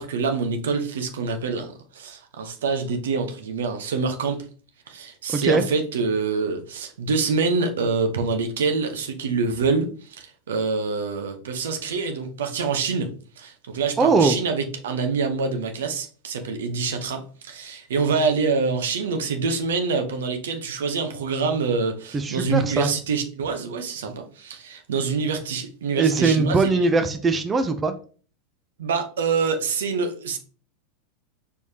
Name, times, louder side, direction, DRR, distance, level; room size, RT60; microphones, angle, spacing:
voice 1, 0.0-4.5 4.9-13.1 13.4-26.9 28.8-30.4, right 4 dB, 75° right, 0.8 m, -26 dB
voice 2, 5.3-5.6 14.0-14.4 22.1-22.9 25.9-27.9, right 4 dB, 20° right, 0.5 m, -20 dB
4.7 x 3.4 x 2.8 m
hypercardioid pair, 100°, 0 cm